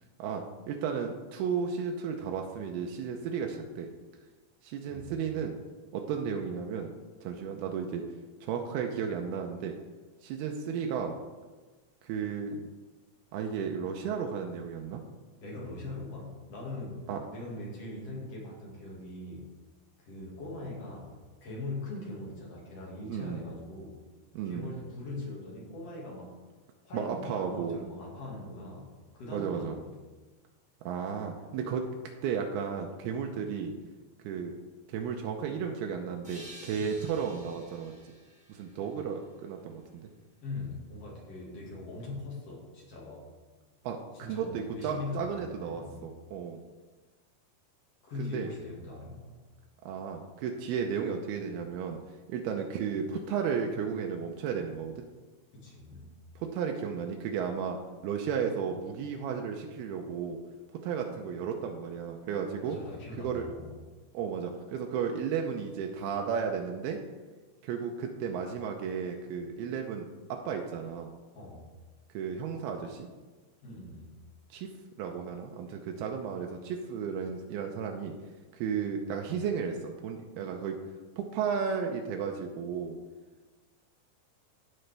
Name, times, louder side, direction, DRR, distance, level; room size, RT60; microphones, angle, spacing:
voice 1, 0.2-3.9 4.6-5.6 5.9-6.9 7.2-8.0 8.4-9.8 10.2-11.2 12.0-12.6 13.3-15.0 17.1-17.2 23.1-23.5 24.3-24.7 26.9-27.8 29.3-29.7 30.8-31.9 32.2-33.7 34.2-34.5 34.9-38.1 38.5-40.1 43.8-46.6 48.2-48.5 49.9-52.0 52.3-55.0 56.4-60.4 60.8-62.8 63.2-63.4 64.1-67.0 67.6-71.1 72.1-73.1 74.5-74.7 75.0-78.1 78.5-80.8 81.2-83.0, right 6 dB, 85° right, 3 dB, 2.6 m, -34 dB
voice 2, 15.4-19.5 20.0-24.0 24.5-26.4 26.8-30.0 36.7-37.1 40.4-43.2 44.1-46.1 48.0-49.4 55.5-56.2 62.6-63.8 71.3-71.7 73.6-74.1, left 2 dB, 45° left, -4 dB, 2.5 m, -41 dB
sound 1, 36.2-39.7, right 1 dB, 5° right, 1.7 m, -52 dB
15.0 x 5.5 x 3.4 m, 1.3 s
omnidirectional pair, 4.4 m